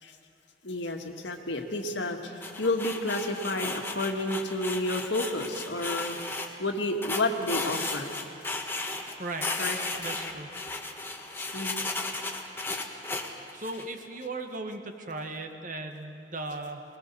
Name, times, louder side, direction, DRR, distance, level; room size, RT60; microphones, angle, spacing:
voice 1, 0.6-6.2 6.6-8.1 9.6-9.8 11.4-11.8, left 2 dB, 80° left, 3 dB, 1.9 m, -30 dB
sound 1, 2.4-6.5 7.0-9.1 9.4-13.8, left 3 dB, 15° left, 1.4 m, -34 dB
voice 2, 9.2-9.5 10.0-10.5 13.5-16.8, right 2 dB, 45° right, 5 dB, 1.5 m, -37 dB
22.5 x 20.5 x 7.0 m, 2.6 s
head